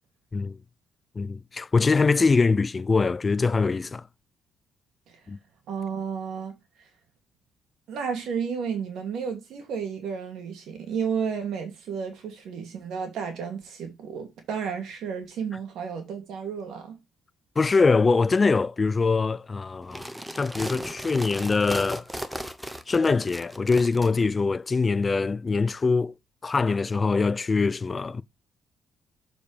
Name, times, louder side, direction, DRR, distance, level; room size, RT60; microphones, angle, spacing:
voice 1, 1.2-4.0 5.3-5.4 17.6-20.0 20.4-22.0 22.9-26.1 26.4-28.2, left 4 dB, 30° left, 0.4 m, -23 dB
voice 2, 5.7-6.5 7.9-17.0, right 6 dB, 80° right, 2.4 m, -32 dB
sound 1, 19.8-24.1, right 1 dB, 5° right, 0.8 m, -36 dB
7.1 x 5.1 x 3.3 m
cardioid pair, 90°, 0 cm